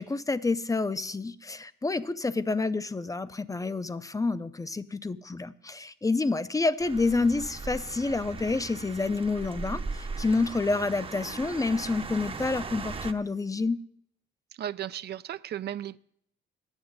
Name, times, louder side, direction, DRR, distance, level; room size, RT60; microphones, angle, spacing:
voice 1, 0.0-13.8, left 3 dB, 15° left, 0.5 m, -28 dB
sound 1, 6.8-13.1, right 4 dB, 25° right, 0.8 m, -38 dB
voice 2, 14.6-16.0, right 11 dB, 55° right, 0.4 m, -35 dB
9.8 x 7.0 x 8.8 m
cardioid pair, 90°, 20 cm